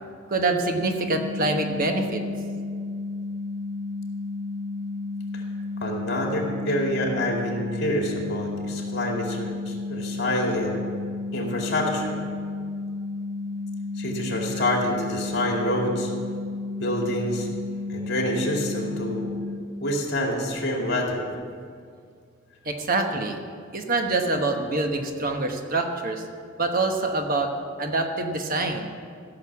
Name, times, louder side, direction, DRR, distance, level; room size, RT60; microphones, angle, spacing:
voice 1, 0.3-2.2 22.6-23.4 23.7-26.2 26.6-27.5 27.8-28.9, right 2 dB, 45° right, 4 dB, 1.1 m, -25 dB
sound 1, 0.8-19.6, left 3 dB, 75° right, 1.3 m, -32 dB
voice 2, 5.8-10.8 11.3-12.2 14.0-16.1 16.8-17.5 17.9-19.3 19.8-21.2, left 1 dB, 60° left, 0 dB, 2.4 m, -27 dB
15.5 x 6.5 x 7.2 m, 2.2 s
head